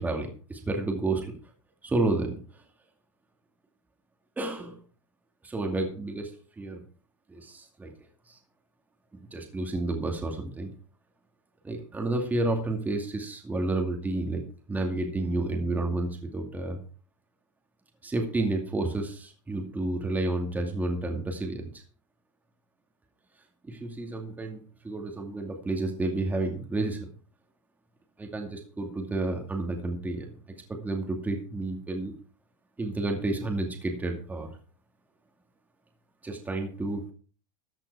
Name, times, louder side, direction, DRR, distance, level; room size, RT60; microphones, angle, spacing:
voice 1, 0.0-1.3 1.8-2.4 4.4-4.8 5.4-6.3 6.6-6.8 7.3-7.9 8.3-8.4 9.1-10.7 11.6-14.4 14.7-16.8 18.0-21.7 23.6-24.6 24.8-27.1 28.2-30.3 30.7-32.1 32.8-34.5 36.2-37.0, right 2 dB, 10° right, 3 dB, 2.3 m, -30 dB
14.0 x 8.2 x 4.7 m, 0.40 s
supercardioid pair, 145°, 16 cm